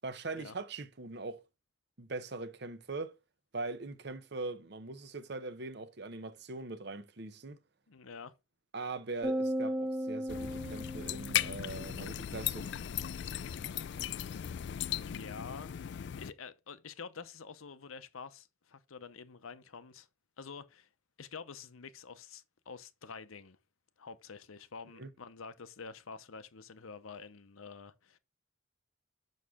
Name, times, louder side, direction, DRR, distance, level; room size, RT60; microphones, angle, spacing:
voice 1, 0.0-1.4 2.0-3.2 3.5-7.6 8.7-12.7 25.0-25.1, right 3 dB, 55° right, 0.8 m, -41 dB
voice 2, 7.9-8.3 14.8-20.1 20.4-20.9 21.2-23.6 24.0-28.2, left 5 dB, 90° left, 0.7 m, -48 dB
sound 1, 9.2-11.8, equal, 5° right, 0.5 m, -35 dB
sound 2, 10.3-16.3, left 10 dB, 55° left, 0.3 m, -37 dB
6.4 x 6.2 x 3.6 m
head